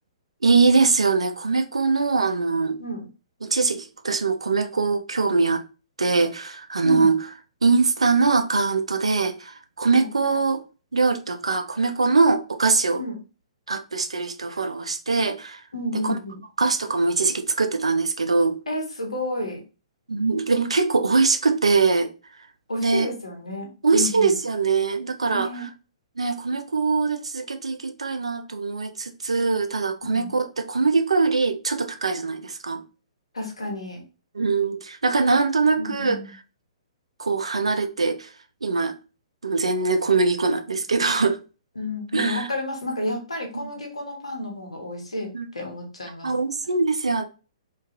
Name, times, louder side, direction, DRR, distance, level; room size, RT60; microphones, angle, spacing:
voice 1, 0.4-2.8 3.4-5.6 6.0-7.2 7.6-10.6 10.9-13.0 13.7-15.6 16.0-16.1 16.6-18.6 20.1-22.1 22.8-23.1 23.8-25.5 26.2-32.8 34.3-36.2 37.2-38.3 38.6-39.0 39.4-41.4 42.1-42.5 43.5-43.7 45.3-45.5 46.2-47.2, right 4 dB, 70° right, 0.4 m, -22 dB
voice 2, 15.7-16.4 18.7-19.6 22.7-24.3 25.3-25.7 30.0-30.3 33.3-34.0 35.8-36.3 41.8-46.3, left 1 dB, 75° left, 0.9 m, -31 dB
2.3 x 2.2 x 2.5 m
figure-of-eight pair, 120°, 3 cm